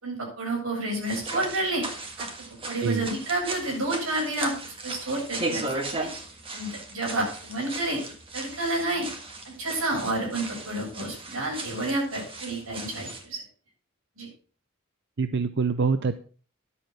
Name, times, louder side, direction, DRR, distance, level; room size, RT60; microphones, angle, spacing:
voice 1, 0.0-1.8 2.2-2.3 2.6-6.1 6.5-8.0 8.3-9.1 9.4-13.4 14.2-14.3, right 2 dB, 85° right, -2 dB, 7.7 m, -30 dB
sound 1, 1.0-13.3, right 2 dB, 25° right, 1.7 m, -37 dB
voice 2, 15.2-16.2, right 4 dB, 55° right, 12 dB, 0.6 m, -25 dB
11.0 x 7.8 x 6.0 m, 0.40 s
head